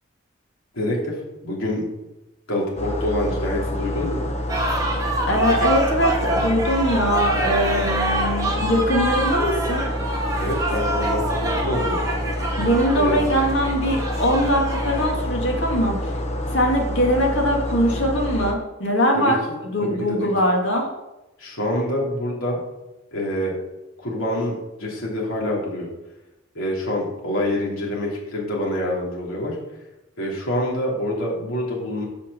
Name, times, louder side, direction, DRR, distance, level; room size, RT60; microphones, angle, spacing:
voice 1, 0.7-1.8 2.5-4.2 10.4-12.0 12.9-13.2 19.1-19.3 19.8-20.3 21.4-22.6 23.1-23.5 24.0-25.9 26.5-29.6 30.2-32.0, left 1 dB, 80° left, -4 dB, 3.1 m, -26 dB
sound 1, 2.8-18.5, left 1 dB, 30° left, 1.0 m, -27 dB
sound 2, 4.5-15.1, right 1 dB, 15° right, 1.4 m, -27 dB
voice 2, 5.3-9.9 12.6-16.2 16.5-20.9, equal, 65° left, 0 dB, 2.3 m, -22 dB
6.9 x 6.1 x 6.9 m, 0.99 s
head